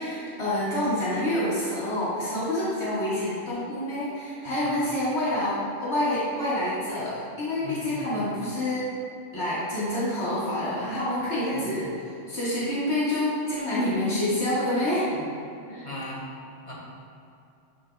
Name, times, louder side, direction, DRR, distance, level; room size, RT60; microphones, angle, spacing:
voice 1, 0.0-8.8 9.3-15.1 15.7-15.9, left 1 dB, 85° left, -10 dB, 2.2 m, -27 dB
voice 2, 7.6-8.3 11.5-11.9 15.7-16.3 16.7-16.8, left 1 dB, 30° left, -5 dB, 1.9 m, -39 dB
12.0 x 7.4 x 2.3 m, 2.7 s
omnidirectional pair, 1.1 m